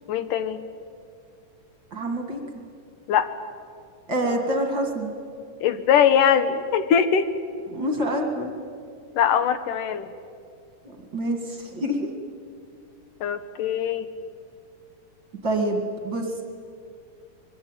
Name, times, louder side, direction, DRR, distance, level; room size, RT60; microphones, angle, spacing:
voice 1, 0.1-0.6 3.1-3.3 5.6-7.3 9.2-10.1 13.2-14.1, left 8 dB, 75° left, 11 dB, 2.5 m, -21 dB
voice 2, 1.9-2.4 4.1-5.1 7.7-8.5 10.8-12.1 15.4-16.4, right 1 dB, 40° right, 3 dB, 2.3 m, -26 dB
24.5 x 22.5 x 9.0 m, 2.3 s
omnidirectional pair, 4.0 m